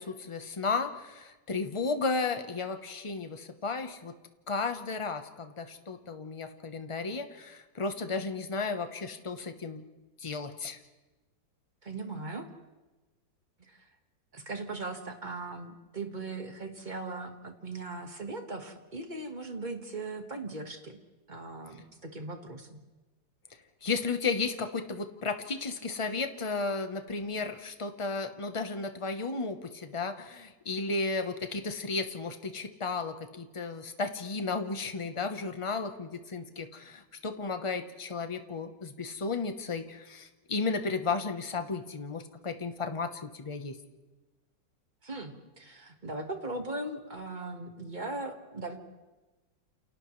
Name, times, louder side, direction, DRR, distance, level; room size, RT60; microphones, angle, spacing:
voice 1, 0.0-4.1 4.5-9.8 10.2-10.8 12.1-12.2 23.8-43.8, left 4 dB, 25° left, 8 dB, 0.6 m, -34 dB
voice 2, 11.8-12.5 13.7-13.8 14.3-21.0 21.3-22.8 45.0-48.8, right 2 dB, 25° right, 4 dB, 1.6 m, -39 dB
29.5 x 28.5 x 3.2 m, 1.2 s
omnidirectional pair, 2.0 m